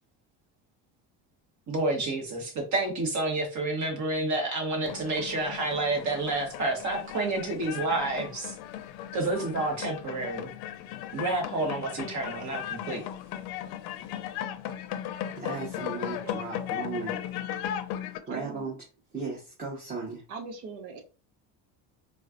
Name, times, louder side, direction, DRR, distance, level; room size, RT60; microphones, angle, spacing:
voice 1, 1.7-8.5 9.1-10.5 11.1-13.1, right 2 dB, 45° right, 2 dB, 1.3 m, -29 dB
sound 1, 4.8-18.2, left 10 dB, 75° left, 0.5 m, -37 dB
voice 2, 15.4-17.2 18.3-18.8 19.1-20.2, right 4 dB, 25° right, -3 dB, 1.0 m, -36 dB
voice 3, 18.3-18.7 20.3-21.0, right 4 dB, 90° right, 4 dB, 0.9 m, -41 dB
4.2 x 2.3 x 2.4 m, 0.34 s
cardioid pair, 130°, 39 cm